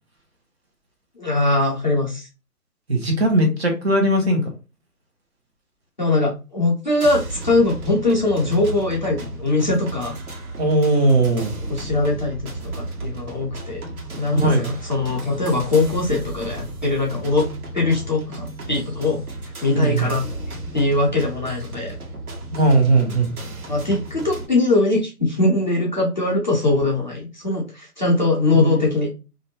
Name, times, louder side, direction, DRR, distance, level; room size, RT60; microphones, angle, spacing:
voice 1, 1.2-2.3 6.0-10.2 11.7-12.4 12.7-13.8 14.1-19.2 19.6-20.2 20.7-21.9 23.7-29.1, left 2 dB, 30° left, -4 dB, 0.5 m, -21 dB
voice 2, 2.9-4.4 10.6-11.5 14.3-14.8 19.7-20.1 22.5-23.3 28.5-28.9, right 2 dB, 45° right, 3 dB, 0.8 m, -18 dB
sound 1, 7.0-24.5, right 2 dB, 65° right, 1.2 m, -34 dB
2.5 x 2.1 x 2.7 m, 0.30 s
figure-of-eight pair, 150°, 46 cm